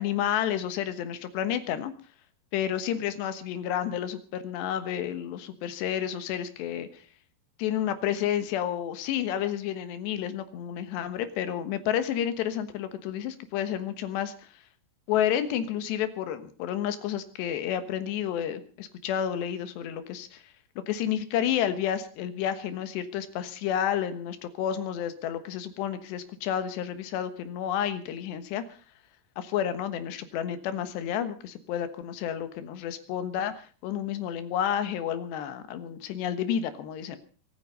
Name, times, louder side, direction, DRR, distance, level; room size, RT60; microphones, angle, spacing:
voice 1, 0.0-1.9 2.5-7.0 7.6-14.5 15.1-20.4 20.9-28.6 29.4-37.2, left 10 dB, 85° left, 11 dB, 3.5 m, -30 dB
23.5 x 9.6 x 5.3 m, 0.39 s
omnidirectional pair, 4.8 m